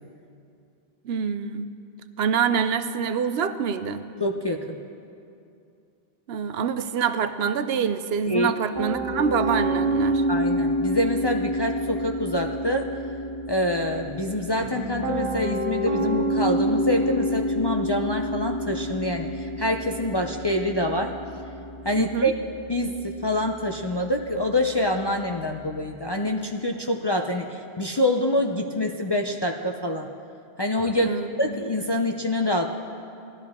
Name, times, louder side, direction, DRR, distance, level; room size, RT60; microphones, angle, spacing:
voice 1, 1.0-1.7 2.2-4.0 6.3-10.2 22.0-22.3 30.9-31.3, right 6 dB, 75° right, 12 dB, 0.8 m, -26 dB
voice 2, 4.2-4.8 8.3-8.5 10.3-12.9 13.5-19.3 19.6-21.1 21.8-22.3 22.7-30.1 30.6-31.1 31.4-32.7, left 1 dB, 35° left, 2 dB, 0.4 m, -26 dB
Piano, 8.7-25.9, equal, 35° right, 1.7 m, -28 dB
18.0 x 12.5 x 3.6 m, 2.6 s
omnidirectional pair, 1.1 m